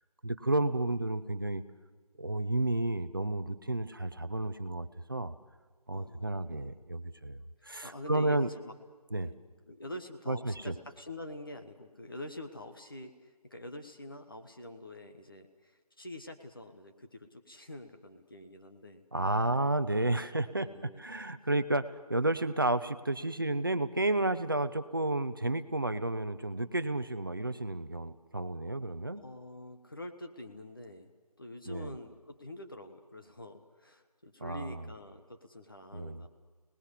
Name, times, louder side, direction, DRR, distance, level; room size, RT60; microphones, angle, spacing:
voice 1, 0.2-1.6 2.2-5.3 5.9-8.5 9.1-9.3 10.3-10.7 19.1-20.7 21.0-29.2 31.7-31.9 34.4-34.8 35.9-36.2, right 2 dB, 35° right, 12 dB, 0.8 m, -31 dB
voice 2, 5.9-6.7 7.8-8.7 9.1-9.3 9.7-19.3 20.6-21.0 29.1-31.1 31.4-36.3, left 1 dB, 35° left, 5 dB, 1.4 m, -46 dB
29.5 x 19.5 x 8.3 m, 1.4 s
figure-of-eight pair, 175°, 20 cm